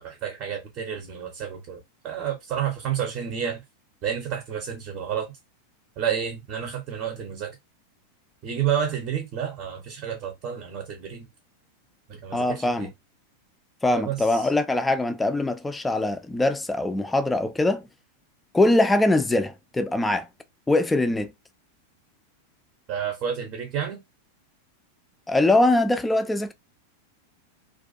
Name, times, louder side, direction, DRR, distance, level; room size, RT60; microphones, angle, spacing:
voice 1, 0.0-3.6 4.0-5.4 6.0-7.5 8.4-11.3 12.1-12.9 13.9-14.5 22.9-24.0, right 8 dB, 35° right, 0.6 m, -30 dB
voice 2, 12.3-12.9 13.8-17.9 18.5-20.3 20.7-21.3 25.3-26.5, left 2 dB, 10° left, 0.3 m, -22 dB
2.4 x 2.3 x 2.5 m
figure-of-eight pair, 90°, 0 cm